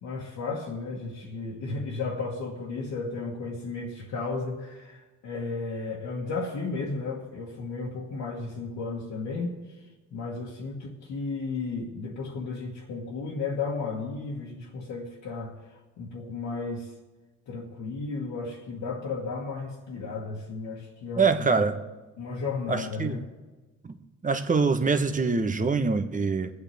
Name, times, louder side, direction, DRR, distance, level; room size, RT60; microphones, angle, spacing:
voice 1, 0.0-16.9 17.5-21.7 22.2-23.2, left 3 dB, 80° left, -5 dB, 2.0 m, -34 dB
voice 2, 21.2-21.8 22.7-23.2 23.8-23.9 24.2-26.5, right 4 dB, 25° right, 8 dB, 1.2 m, -24 dB
22.5 x 8.5 x 3.5 m, 1.2 s
cardioid pair, 90°, 30 cm